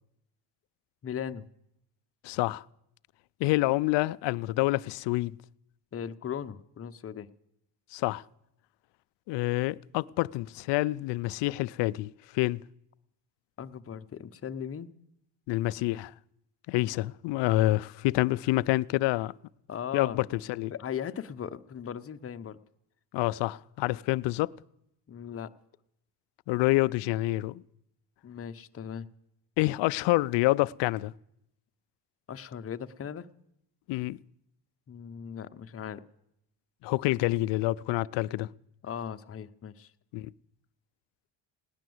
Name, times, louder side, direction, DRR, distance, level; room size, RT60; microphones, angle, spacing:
voice 1, 1.0-1.5 5.9-7.3 13.6-14.9 19.7-20.2 20.7-22.6 25.1-25.5 28.2-29.1 32.3-33.3 34.9-36.0 38.8-39.9, left 8 dB, 35° left, 0.7 m, -38 dB
voice 2, 2.2-2.6 3.4-5.4 7.9-8.2 9.3-12.6 15.5-16.1 16.7-19.3 19.9-20.7 23.1-24.5 26.5-27.6 29.6-31.1 33.9-34.2 36.8-38.5 40.1-40.3, left 18 dB, 80° left, 0.5 m, -27 dB
17.5 x 10.5 x 7.8 m
cardioid pair, 85°, 42 cm